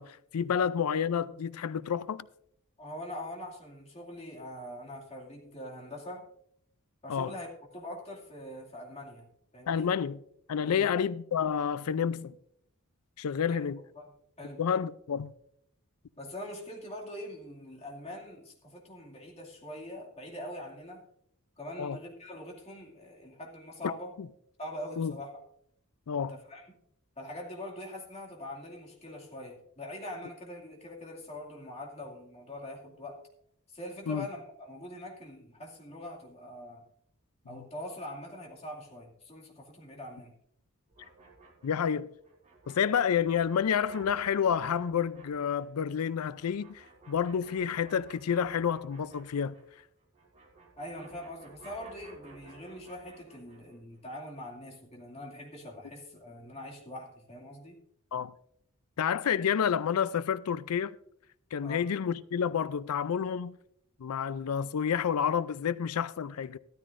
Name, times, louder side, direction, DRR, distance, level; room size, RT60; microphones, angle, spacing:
voice 1, 0.0-2.3 7.1-7.3 9.7-10.2 10.5-12.4 13.2-13.8 14.6-15.3 21.8-22.0 24.2-24.3 25.0-25.1 26.1-26.3 34.1-34.3 41.6-42.1 42.7-49.6 58.1-58.3 59.0-60.9 61.5-63.5 64.0-66.6, left 7 dB, 80° left, 0.4 m, -29 dB
voice 2, 2.8-6.3 7.0-9.9 10.6-10.9 13.5-14.1 14.4-14.6 16.2-21.1 21.6-24.2 24.6-25.4 26.2-26.7 27.2-33.2 33.7-36.8 37.5-40.3 50.8-57.8 61.6-61.9, left 1 dB, 30° left, 2.4 m, -43 dB
sound 1, 40.9-49.8 50.1-53.8, right 3 dB, 35° right, 3.5 m, -55 dB
14.5 x 13.5 x 2.6 m
head